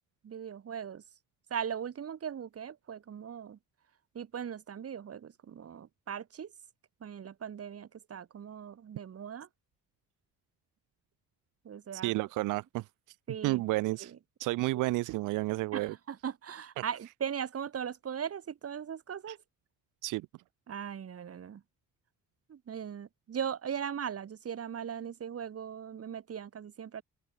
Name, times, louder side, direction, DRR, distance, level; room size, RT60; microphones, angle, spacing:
voice 1, 0.2-1.0 1.5-3.6 4.1-6.5 7.0-9.5 11.6-12.1 13.3-13.6 14.0-14.2 14.7-14.8 15.7-19.4 20.7-21.6 22.5-27.0, right 8 dB, 50° right, 3.2 m, -39 dB
voice 2, 11.9-13.2 13.4-14.1 14.4-15.9 19.3-19.4 20.0-20.3, right 19 dB, 80° right, 0.5 m, -31 dB
open air
cardioid pair, 90°, 31 cm